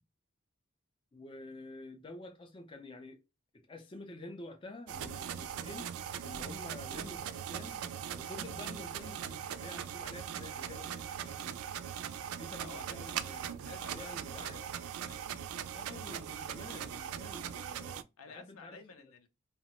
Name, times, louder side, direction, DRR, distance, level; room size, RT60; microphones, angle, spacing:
voice 1, 1.1-3.2 3.5-7.9 8.2-11.6 12.3-13.5 13.8-14.6 15.7-18.8, left 2 dB, 25° left, 0.4 m, -49 dB
sound 1, 4.9-18.0, right 9 dB, 85° right, 0.3 m, -40 dB
voice 2, 12.6-15.5 18.2-19.3, left 4 dB, 80° left, 0.6 m, -53 dB
2.8 x 2.1 x 2.8 m
head